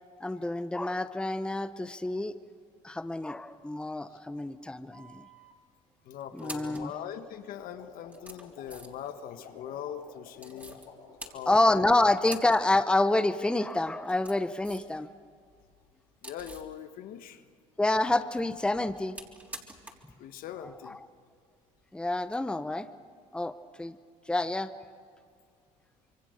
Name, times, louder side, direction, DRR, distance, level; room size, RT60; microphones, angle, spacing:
voice 1, 0.2-2.4 2.8-5.2 6.3-6.9 11.5-15.1 17.8-19.2 21.9-22.9 23.3-23.5 23.8-24.0 24.3-24.7, left 2 dB, 5° left, 11 dB, 0.8 m, -27 dB
sound 1, 4.9-5.5 6.2-6.9 7.6-7.7 8.1-9.1 10.4-10.9 11.2-11.8 12.2-12.6 12.9-13.0 13.9-15.0 15.3-16.7 18.1-20.1 20.4-20.5 22.2-22.4, right 1 dB, 10° right, 3.7 m, -47 dB
voice 2, 6.0-10.8 11.3-12.0 16.2-17.4 20.2-21.0, left 9 dB, 65° left, 8 dB, 1.6 m, -41 dB
sound 2, 6.8-11.6, left 4 dB, 90° left, 7.3 m, -51 dB
26.5 x 23.0 x 6.8 m, 2.2 s
supercardioid pair, 90°, 16 cm